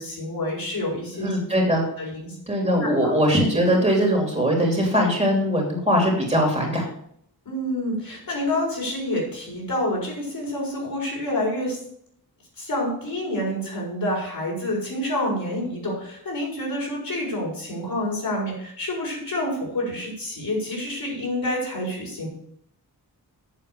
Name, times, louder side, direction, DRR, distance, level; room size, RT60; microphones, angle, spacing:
voice 1, 0.0-1.3 1.7-3.1 7.4-11.8 12.6-22.3, left 1 dB, 65° left, -3 dB, 4.9 m, -28 dB
voice 2, 1.2-1.8 2.5-6.8, equal, 15° right, -1 dB, 2.9 m, -21 dB
8.3 x 7.0 x 6.9 m, 0.69 s
wide cardioid pair, 175°, 38 cm